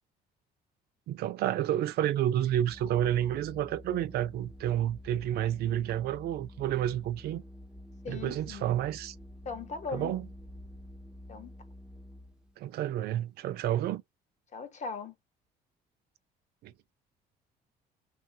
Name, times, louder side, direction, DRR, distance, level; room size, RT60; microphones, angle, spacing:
voice 1, 1.1-7.4 8.1-9.1 9.9-10.3 12.6-14.0 16.6-16.7, right 11 dB, 70° right, 0.5 m, -30 dB
Organ, 2.2-12.5, left 1 dB, 5° right, 0.4 m, -49 dB
voice 2, 8.0-8.7 9.4-10.1 11.3-11.5 14.5-15.1, left 5 dB, 45° left, 0.9 m, -39 dB
3.0 x 2.3 x 2.7 m
cardioid pair, 110°, 17 cm